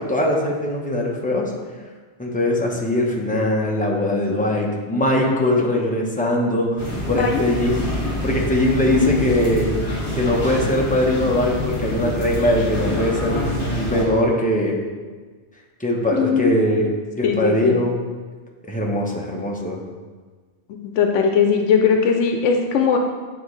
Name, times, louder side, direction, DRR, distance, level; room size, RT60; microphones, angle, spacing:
voice 1, 0.0-1.5 2.2-9.7 10.1-13.4 13.7-14.7 15.8-16.8 17.2-18.0 18.7-19.8, left 1 dB, 10° left, -2 dB, 0.8 m, -21 dB
sound 1, 6.8-14.0, left 1 dB, 50° left, 1.8 m, -25 dB
voice 2, 7.1-7.7 16.1-16.5 17.2-17.8 21.0-23.0, left 6 dB, 85° left, 3 dB, 0.9 m, -19 dB
9.2 x 4.1 x 3.2 m, 1.4 s
omnidirectional pair, 1.2 m